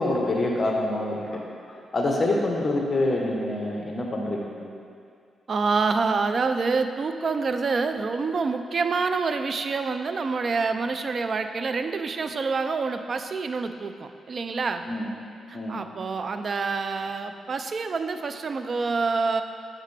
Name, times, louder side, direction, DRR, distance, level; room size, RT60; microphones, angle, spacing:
voice 1, 0.0-1.4 1.7-4.6 14.8-15.1 15.5-15.8, left 2 dB, 40° left, -1 dB, 1.1 m, -26 dB
voice 2, 5.5-14.8 15.5-19.4, right 4 dB, 50° right, 8 dB, 0.4 m, -27 dB
7.3 x 6.6 x 3.4 m, 2.4 s
cardioid pair, 85°, 0 cm